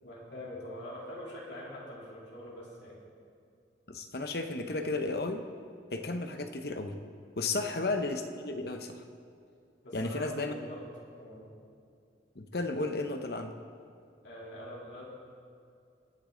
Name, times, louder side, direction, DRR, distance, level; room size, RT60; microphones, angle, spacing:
voice 1, 0.0-3.0 7.5-7.8 9.8-10.8 11.2-11.5 14.2-15.0, left 1 dB, 80° left, -6 dB, 3.3 m, -44 dB
voice 2, 3.9-5.4 5.9-6.9 7.4-9.0 9.9-10.5 12.4-13.6, left 2 dB, 55° left, 6 dB, 0.9 m, -33 dB
22.5 x 8.5 x 3.8 m, 2.4 s
head